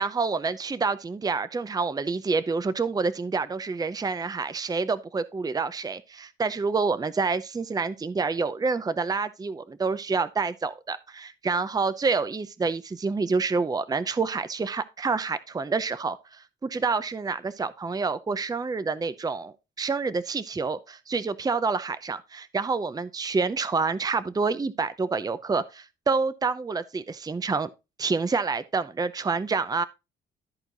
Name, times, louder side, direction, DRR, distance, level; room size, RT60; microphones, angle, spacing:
voice 1, 0.0-27.7 28.0-29.8, right 4 dB, 20° right, 0.6 m, -28 dB
13.5 x 4.6 x 3.9 m
cardioid pair, 90°, 20 cm